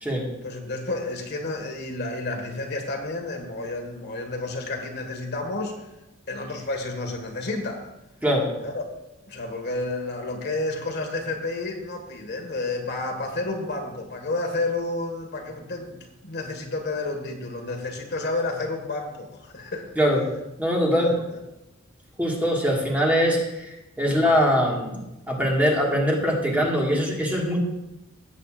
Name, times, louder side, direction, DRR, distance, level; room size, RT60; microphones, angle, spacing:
voice 1, 0.4-5.9 6.3-7.8 8.6-8.8 9.3-19.9 21.0-21.2 24.1-24.2, left 2 dB, 55° left, 3 dB, 1.6 m, -30 dB
voice 2, 20.6-21.1 22.2-25.0 25.3-27.6, equal, 10° right, -2 dB, 1.7 m, -22 dB
17.0 x 8.2 x 2.5 m, 0.94 s
head